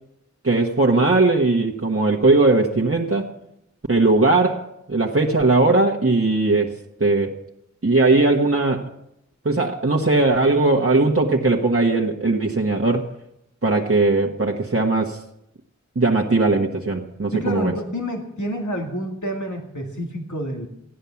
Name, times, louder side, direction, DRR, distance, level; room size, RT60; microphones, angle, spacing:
voice 1, 0.4-3.3 3.9-7.4 7.8-8.9 9.4-13.1 13.6-15.2 15.9-17.7, right 3 dB, 50° right, 0 dB, 1.4 m, -19 dB
voice 2, 17.3-20.7, equal, 75° left, 2 dB, 2.2 m, -28 dB
16.5 x 10.0 x 7.1 m, 0.80 s
wide cardioid pair, 40°, 30 cm